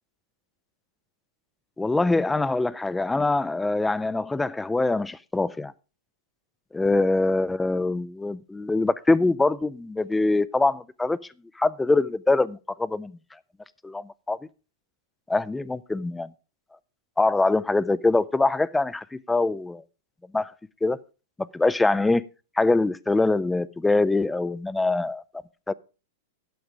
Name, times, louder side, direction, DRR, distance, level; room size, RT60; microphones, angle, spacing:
voice 1, 1.8-5.7 6.7-11.2 11.6-13.2 13.8-14.4 15.3-16.3 17.2-19.8 20.3-20.5 20.8-21.0 21.4-22.2 22.6-25.2 25.7-25.8, left 2 dB, 5° left, 0.4 m, -23 dB
12.0 x 7.1 x 4.7 m
supercardioid pair, 155°, 0 cm